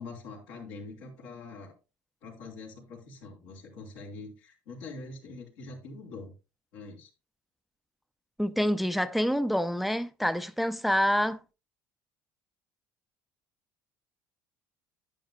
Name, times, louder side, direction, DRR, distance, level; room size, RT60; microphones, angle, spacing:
voice 1, 0.0-1.7 2.2-6.3 6.7-7.1, left 3 dB, 85° left, 3.6 m, -44 dB
voice 2, 8.4-11.4, equal, ahead, 0.5 m, -27 dB
11.0 x 9.1 x 2.3 m
supercardioid pair, 90°, 8 cm